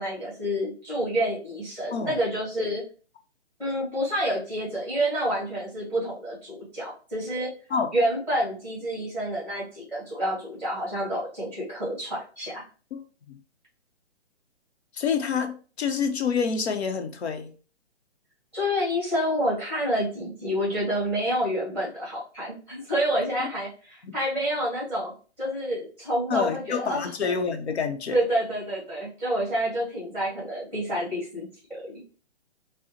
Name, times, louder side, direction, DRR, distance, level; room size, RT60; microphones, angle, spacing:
voice 1, 0.0-2.8 3.6-7.5 7.9-12.6 18.5-25.1 25.4-27.1 28.1-32.0, equal, 5° left, 1.7 m, -28 dB
voice 2, 12.9-13.4 14.9-17.5 24.0-24.1 26.3-28.2, left 6 dB, 70° left, 0.8 m, -27 dB
5.2 x 2.1 x 2.8 m
hypercardioid pair, 145°, 33 cm